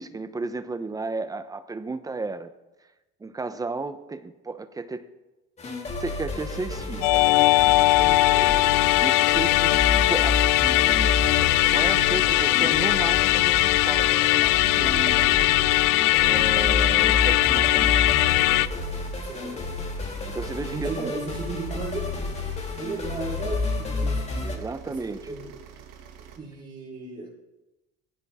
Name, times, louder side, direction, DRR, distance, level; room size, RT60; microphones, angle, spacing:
voice 1, 0.0-2.5 3.2-5.1 6.0-7.3 9.0-10.4 10.8-11.2 11.7-13.5 13.8-14.2 14.8-15.4 16.2-18.0 20.3-21.1 24.4-25.3, right 3 dB, 10° right, 11 dB, 0.8 m, -33 dB
sound 1, 5.6-24.6, left 3 dB, 20° left, 2.3 m, -30 dB
Musical instrument, 7.0-18.7, left 18 dB, 80° left, 0.6 m, -20 dB
voice 2, 8.3-8.6 19.2-19.6 20.6-22.1 22.8-25.5 26.2-27.3, right 3 dB, 25° right, -3 dB, 4.5 m, -35 dB
sound 2, 10.9-26.4, right 8 dB, 60° right, 2.2 m, -47 dB
20.5 x 16.0 x 3.7 m, 1.0 s
cardioid pair, 155°, 31 cm